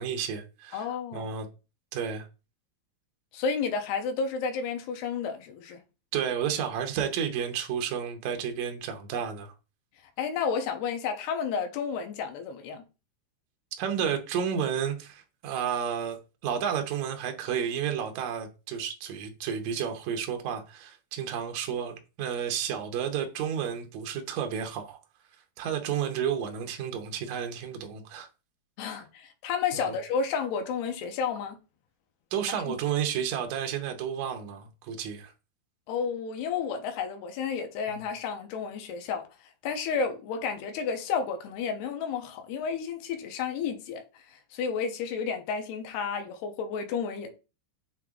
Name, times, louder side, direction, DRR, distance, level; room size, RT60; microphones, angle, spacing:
voice 1, 0.0-1.5 1.9-2.3 6.1-9.5 13.8-25.0 25.6-28.3 28.9-29.0 29.7-30.0 32.3-35.3 37.9-38.0, right 8 dB, 75° right, 1.7 m, -31 dB
voice 2, 0.7-1.3 3.3-5.8 10.2-12.8 28.8-31.6 32.7-32.8 35.9-47.3, left 6 dB, 85° left, 2.9 m, -31 dB
7.7 x 3.4 x 3.7 m
omnidirectional pair, 4.6 m